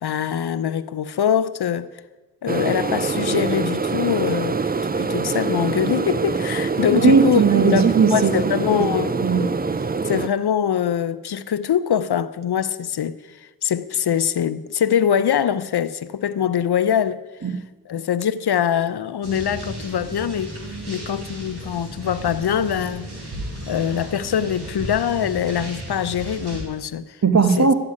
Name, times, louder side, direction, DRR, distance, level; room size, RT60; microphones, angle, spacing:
voice 1, 0.0-1.9 2.4-4.6 5.0-7.4 7.7-7.8 8.1-9.1 10.0-17.2 17.9-20.6 20.9-23.1 23.7-27.2 27.6-27.7, left 9 dB, 75° left, 0.7 m, -23 dB
sound 1, 2.5-10.3, right 4 dB, 25° right, 0.5 m, -24 dB
voice 2, 6.9-8.5 8.8-8.9 9.2-9.9 17.4-17.6 27.2-27.7, right 5 dB, 45° right, 1.3 m, -18 dB
sound 2, 19.2-26.6, right 1 dB, 90° right, 4.1 m, -34 dB
13.0 x 7.9 x 9.8 m
cardioid pair, 55°, 39 cm